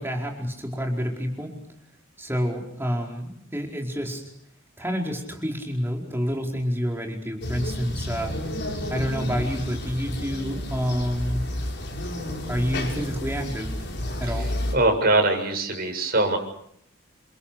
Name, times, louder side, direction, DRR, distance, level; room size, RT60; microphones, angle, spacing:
voice 1, 0.0-1.5 2.2-4.2 4.8-8.3 8.9-11.5 12.5-13.7 14.2-14.5, equal, 10° right, 1 dB, 4.8 m, -28 dB
sound 1, 7.4-14.8, left 1 dB, 50° left, 6.3 m, -31 dB
voice 2, 14.7-16.4, right 2 dB, 45° right, 3 dB, 7.3 m, -22 dB
30.0 x 26.5 x 6.8 m, 0.71 s
head